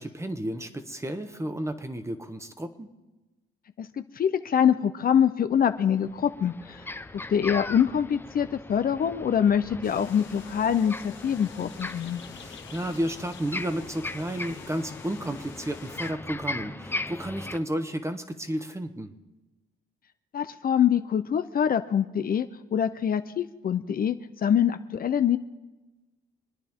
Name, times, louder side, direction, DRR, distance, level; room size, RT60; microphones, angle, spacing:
voice 1, 0.0-2.9 12.3-19.1, right 1 dB, 15° right, 8 dB, 1.3 m, -32 dB
voice 2, 4.2-6.8 7.3-12.2 20.3-25.4, left 8 dB, 50° left, 10 dB, 0.6 m, -24 dB
sound 1, 6.0-17.6, left 2 dB, 10° left, 0.7 m, -39 dB
sound 2, 9.8-16.1, left 7 dB, 70° left, 1.4 m, -47 dB
26.5 x 10.0 x 3.7 m, 1.1 s
cardioid pair, 90°, 20 cm